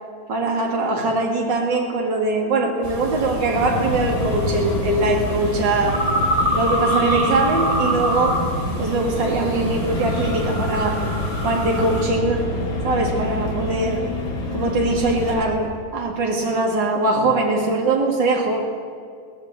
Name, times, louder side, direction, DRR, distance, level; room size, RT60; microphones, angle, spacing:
voice 1, 0.3-6.0 6.5-8.4 8.8-11.0 11.4-12.5 12.8-14.1 14.5-18.6, right 2 dB, 65° right, 0 dB, 3.0 m, -21 dB
sound 1, 2.8-12.0, right 1 dB, 35° right, 4.7 m, -26 dB
sound 2, 3.5-15.4, left 2 dB, 80° left, 3.7 m, -28 dB
23.0 x 18.0 x 8.4 m, 2.3 s
omnidirectional pair, 2.1 m